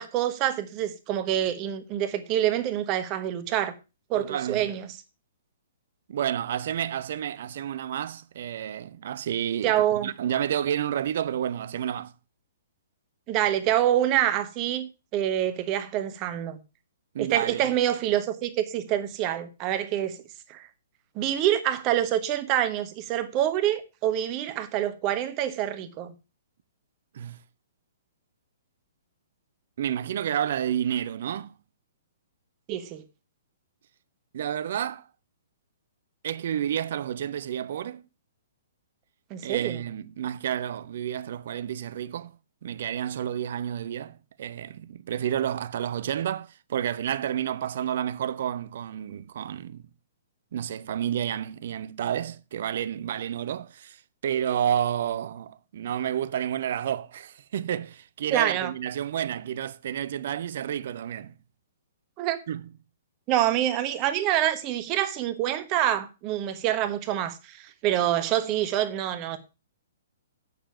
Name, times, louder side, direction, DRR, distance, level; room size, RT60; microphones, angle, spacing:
voice 1, 0.0-3.7 4.1-5.0 9.6-10.1 13.3-16.6 17.2-20.2 20.5-20.7 21.1-26.1 32.7-33.0 39.3-39.8 58.3-58.7 62.2-62.4 63.3-69.4, right 12 dB, 30° right, 1.2 m, -26 dB
voice 2, 4.1-4.6 6.1-9.7 10.0-12.1 17.1-17.6 27.1-27.4 29.8-31.5 34.3-35.0 36.2-38.0 39.4-42.4 42.6-49.8 50.5-54.0 54.2-61.3 62.5-62.7, right 10 dB, 50° right, 0.6 m, -30 dB
8.7 x 6.8 x 5.9 m
figure-of-eight pair, 120°, 0 cm